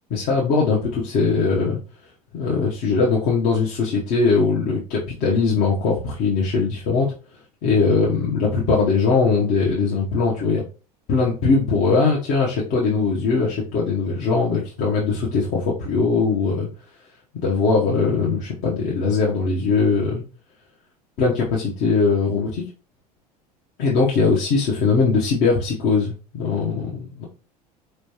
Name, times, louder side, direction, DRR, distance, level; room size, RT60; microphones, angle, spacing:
voice 1, 0.1-1.8 2.3-7.1 7.6-10.6 11.1-16.7 17.3-20.2 21.2-22.6 23.8-27.2, left 4 dB, 45° left, -4 dB, 1.0 m, -20 dB
4.4 x 3.2 x 2.8 m, 0.36 s
figure-of-eight pair, 70°, 20 cm